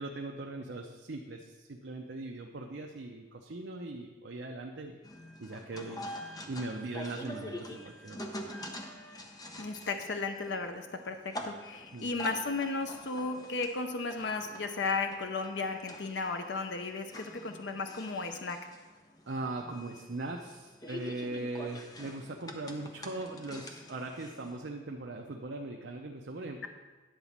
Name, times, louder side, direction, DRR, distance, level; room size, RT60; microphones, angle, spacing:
voice 1, 0.0-5.0 5.4-6.0 6.5-8.5 11.9-12.1 19.3-26.7, right 2 dB, 60° right, 1 dB, 0.6 m, -40 dB
sound 1, 5.0-24.6, left 1 dB, 20° left, 0.7 m, -46 dB
voice 2, 9.6-18.6, left 3 dB, 60° left, 6 dB, 0.6 m, -35 dB
10.5 x 4.0 x 7.2 m, 1.3 s
head